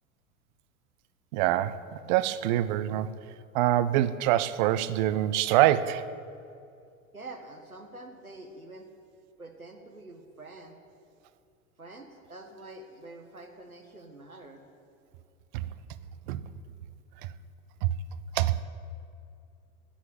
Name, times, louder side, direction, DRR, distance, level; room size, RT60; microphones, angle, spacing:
voice 1, 1.3-3.1 3.5-6.1 15.5-15.7 16.3-16.4 17.8-17.9 18.3-18.6, right 13 dB, 35° right, 15 dB, 0.5 m, -25 dB
voice 2, 7.1-8.9 9.4-10.8 11.8-14.6, right 2 dB, 90° right, 4 dB, 1.4 m, -46 dB
10.0 x 8.0 x 9.3 m, 2.5 s
figure-of-eight pair, 90°, 42 cm